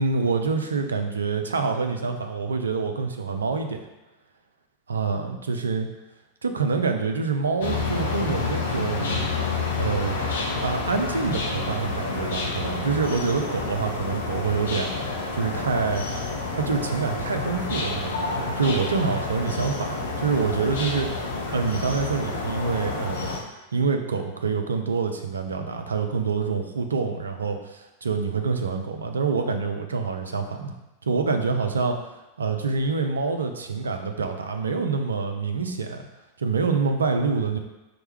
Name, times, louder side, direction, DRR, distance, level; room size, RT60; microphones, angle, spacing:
voice 1, 0.0-3.8 4.9-5.9 6.4-9.3 9.8-10.2 10.6-16.0 16.6-21.1 21.5-23.3 23.7-30.8 31.0-32.0 32.4-36.0 36.4-37.6, right 4 dB, 70° right, 5 dB, 0.3 m, -26 dB
sound 1, 7.6-23.4, left 3 dB, 60° left, 0.6 m, -29 dB
4.4 x 2.1 x 3.1 m, 1.0 s
figure-of-eight pair, 90°, 0 cm